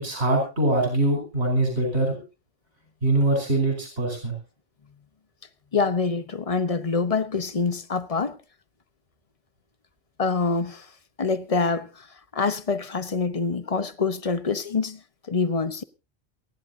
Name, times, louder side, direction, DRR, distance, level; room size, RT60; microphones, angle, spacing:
voice 1, 0.0-2.2 3.0-4.3, right 2 dB, 65° right, 5.3 m, -23 dB
voice 2, 5.7-8.4 10.2-10.9 11.2-12.1 12.3-15.0 15.3-15.8, left 4 dB, 35° left, 0.9 m, -25 dB
28.0 x 11.0 x 2.7 m
omnidirectional pair, 1.2 m